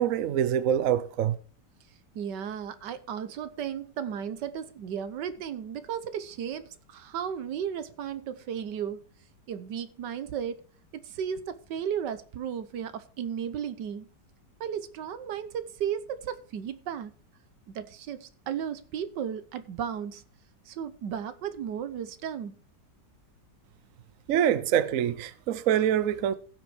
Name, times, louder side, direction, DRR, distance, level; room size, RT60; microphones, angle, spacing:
voice 1, 0.0-1.3 24.3-26.3, right 10 dB, 60° right, 0.9 m, -25 dB
voice 2, 2.1-9.1 9.5-10.6 11.0-14.1 14.6-17.1 17.7-20.2 20.7-22.6, right 8 dB, 75° right, 1.5 m, -34 dB
15.5 x 6.2 x 4.9 m
omnidirectional pair, 1.9 m